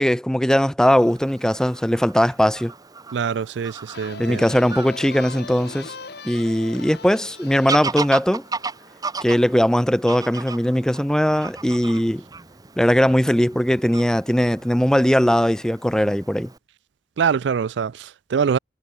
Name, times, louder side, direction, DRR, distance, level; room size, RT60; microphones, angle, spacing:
voice 1, 0.0-2.7 4.2-5.9 6.2-8.4 9.2-12.2 12.8-16.5, equal, 5° left, 0.6 m, -19 dB
Fowl / Bird vocalization bird call bird song, 0.8-16.6, right 4 dB, 20° right, 1.0 m, -36 dB
voice 2, 3.1-4.4 17.2-18.6, right 6 dB, 80° right, 0.4 m, -24 dB
sound 1, 3.9-9.4, left 4 dB, 65° left, 1.5 m, -40 dB
head